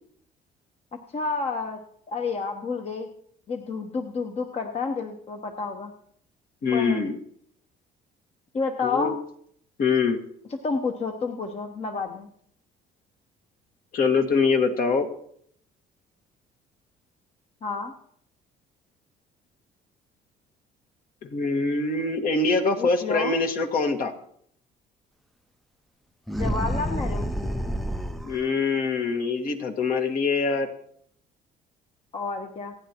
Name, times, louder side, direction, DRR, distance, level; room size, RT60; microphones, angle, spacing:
voice 1, 1.1-1.8 2.1-3.1 3.5-5.9 6.7-7.0 8.5-9.2 10.5-12.3 17.6-17.9 22.8-23.4 26.3-27.3 32.1-32.7, left 4 dB, 40° left, 4 dB, 1.0 m, -30 dB
voice 2, 6.6-7.2 8.8-9.2 9.8-10.2 13.9-15.1 21.2-24.1 28.2-30.7, left 4 dB, 60° left, 5 dB, 1.7 m, -24 dB
sound 1, 26.3-28.5, equal, ahead, 0.5 m, -28 dB
28.5 x 9.5 x 3.0 m, 0.66 s
cardioid pair, 110°, 17 cm